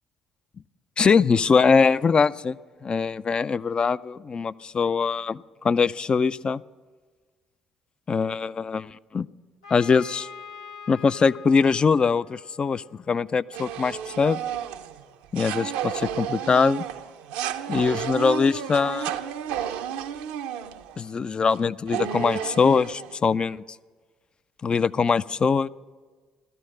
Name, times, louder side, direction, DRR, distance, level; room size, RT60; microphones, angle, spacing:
voice 1, 1.0-2.6 2.8-6.6 8.1-9.3 9.7-10.3 10.9-14.4 15.3-16.8 17.7-19.1 21.0-23.6 24.6-25.7, left 5 dB, 35° left, 16 dB, 0.4 m, -22 dB
Trumpet, 9.6-13.4, left 6 dB, 85° left, 0.9 m, -44 dB
sound 1, 13.5-21.1 21.5-21.6 21.9-23.2, right 9 dB, 75° right, 0.6 m, -32 dB
16.5 x 13.0 x 6.5 m, 1.4 s
hypercardioid pair, 50°, 3 cm